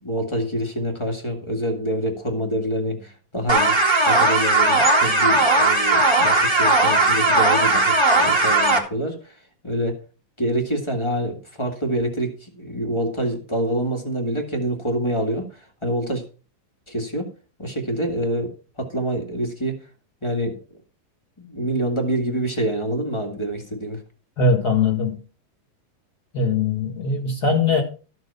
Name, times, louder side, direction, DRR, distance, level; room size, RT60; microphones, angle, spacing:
voice 1, 0.0-3.8 4.0-9.4 9.6-10.0 10.4-16.2 16.9-17.3 17.6-19.8 20.2-20.5 21.4-24.0, right 1 dB, 15° left, 0.9 m, -26 dB
sound 1, 3.5-8.8, right 2 dB, 20° right, 0.7 m, -17 dB
voice 2, 24.4-25.2 26.3-27.8, left 3 dB, 40° left, 1.5 m, -21 dB
13.5 x 6.2 x 5.5 m
omnidirectional pair, 4.1 m